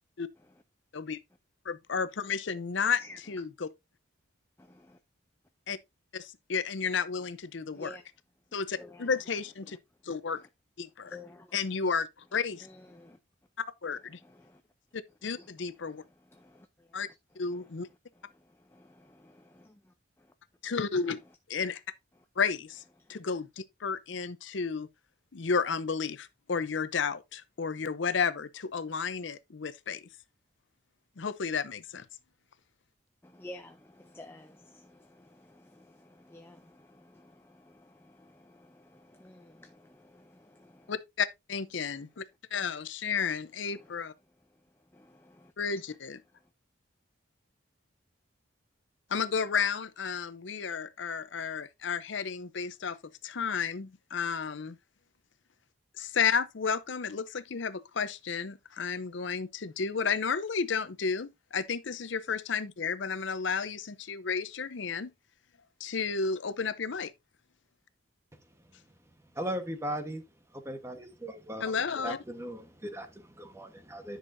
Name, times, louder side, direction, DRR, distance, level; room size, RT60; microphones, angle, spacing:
voice 1, 1.7-3.0 3.3-3.7 5.7-5.8 6.1-8.0 8.5-9.8 10.0-10.4 10.8-11.2 11.5-12.7 13.8-14.2 15.2-16.0 16.9-17.1 17.4-17.9 20.7-21.2 21.5-21.8 22.4-22.8 23.1-24.9 25.3-30.0 31.2-32.0 40.9-42.2 42.5-44.1 45.6-46.2 49.1-53.0 53.2-54.8 56.0-65.1 65.8-67.1 71.6-72.2, left 5 dB, 65° left, 0.6 m, -32 dB
voice 2, 4.6-5.0 7.7-8.0 8.8-9.1 9.7-9.8 10.4-10.5 11.1-11.5 12.6-13.2 14.2-14.6 15.4-15.5 15.9-17.0 17.5-17.7 18.3-19.9 23.0-23.2 33.2-40.9 43.7-43.9 44.9-45.5, left 1 dB, 10° left, 0.5 m, -52 dB
voice 3, 69.3-70.2 70.5-72.6 72.9-74.2, right 1 dB, 15° right, 1.1 m, -38 dB
10.5 x 6.3 x 2.6 m
head